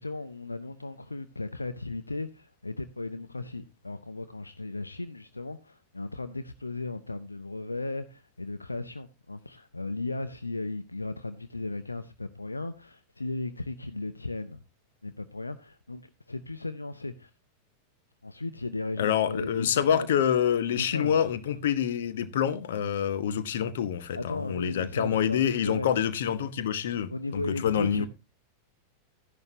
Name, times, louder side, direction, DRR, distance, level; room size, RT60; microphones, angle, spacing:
voice 1, 0.0-14.6 15.0-17.3 18.2-20.1 20.8-21.2 24.1-26.0 27.1-28.1, left 2 dB, 80° left, 0.6 m, -36 dB
voice 2, 19.0-28.1, left 9 dB, 60° left, 1.1 m, -27 dB
13.5 x 10.5 x 2.8 m
figure-of-eight pair, 90°, 0 cm